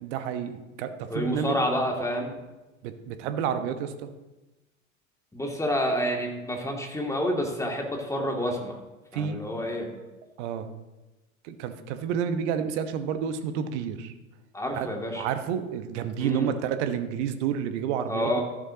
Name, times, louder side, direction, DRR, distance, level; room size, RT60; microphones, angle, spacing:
voice 1, 0.0-1.5 2.8-4.1 9.1-9.5 10.4-10.7 11.4-14.1 14.7-14.9 15.2-18.4, right 8 dB, 55° right, 9 dB, 1.2 m, -30 dB
voice 2, 1.1-2.3 5.3-8.8 9.1-9.9 14.5-15.3 16.2-16.5 18.1-18.4, equal, 5° left, 0 dB, 2.3 m, -28 dB
13.5 x 11.0 x 2.8 m, 1.1 s
figure-of-eight pair, 75°, 42 cm